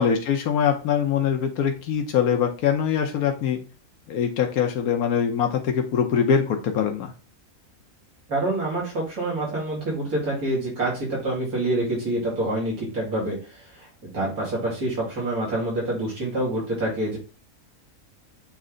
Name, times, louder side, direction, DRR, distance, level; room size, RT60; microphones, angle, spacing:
voice 1, 0.0-3.6 4.1-7.1, left 7 dB, 85° left, 4 dB, 1.3 m, -23 dB
voice 2, 8.3-13.9 14.1-17.2, right 1 dB, 90° right, -5 dB, 3.0 m, -27 dB
7.5 x 3.3 x 3.8 m, 0.34 s
omnidirectional pair, 1.5 m